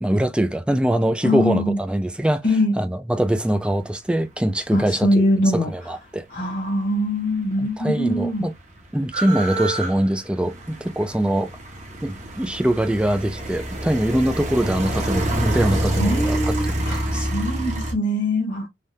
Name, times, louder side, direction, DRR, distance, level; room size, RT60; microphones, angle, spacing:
voice 1, 0.0-2.4 2.8-5.3 5.5-6.3 7.6-8.5 8.9-11.5 12.0-17.3, right 1 dB, 5° right, 0.3 m, -23 dB
voice 2, 1.2-1.8 2.4-2.7 4.7-5.7 6.3-8.5 16.0-18.7, left 1 dB, 50° left, 0.9 m, -22 dB
sound 1, 7.3-7.4 7.6-17.9, right 1 dB, 40° right, 0.8 m, -27 dB
3.4 x 2.3 x 2.6 m
head